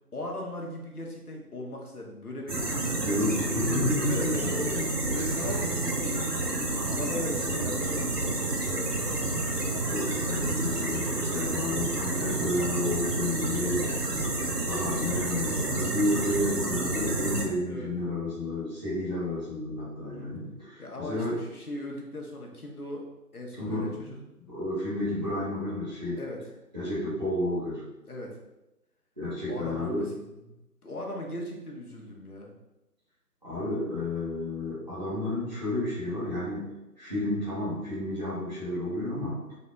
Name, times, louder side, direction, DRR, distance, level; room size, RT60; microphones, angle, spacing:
voice 1, 0.1-3.4 4.1-4.7 5.1-6.5 6.9-9.3 11.3-11.7 13.6-14.1 16.8-16.9 17.6-18.0 20.1-20.3 20.8-23.1 23.3-24.2 26.2-26.4 28.0-28.4 29.5-32.6, left 1 dB, 65° left, 0 dB, 1.0 m, -39 dB
sound 1, 2.5-17.5, right 2 dB, 75° right, 1.0 m, -29 dB
voice 2, 2.9-4.8 9.8-13.8 14.7-21.4 23.6-24.1 24.4-26.2 26.7-27.8 29.2-30.0 33.4-36.7 37.0-39.4, left 1 dB, 25° right, -12 dB, 1.2 m, -31 dB
Human voice / Acoustic guitar, 3.0-11.0, right 2 dB, 45° right, 0.8 m, -44 dB
4.0 x 2.9 x 3.4 m, 0.96 s
figure-of-eight pair, 170°, 48 cm